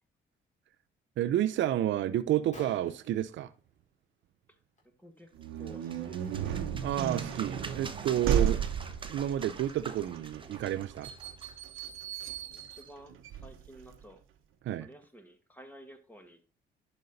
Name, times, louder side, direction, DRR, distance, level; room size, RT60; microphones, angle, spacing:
voice 1, 1.2-3.5 6.8-8.6 9.0-11.1 14.6-14.9, right 12 dB, 70° right, 0.6 m, -30 dB
Gunshot gunfire, 2.5-4.1 4.5-4.8 5.1-5.3 6.1-6.3 6.8-6.9 7.3-8.9, left 2 dB, 35° left, 4.3 m, -55 dB
voice 2, 5.0-5.3 5.6-6.6 12.5-14.2 14.8-16.6, right 1 dB, 10° left, 1.7 m, -53 dB
sound 1, 5.3-14.0, right 8 dB, 90° right, 1.1 m, -34 dB
Fish approaching, 5.4-12.9, right 4 dB, 25° right, 1.1 m, -47 dB
10.5 x 5.4 x 4.0 m
cardioid pair, 90°, 20 cm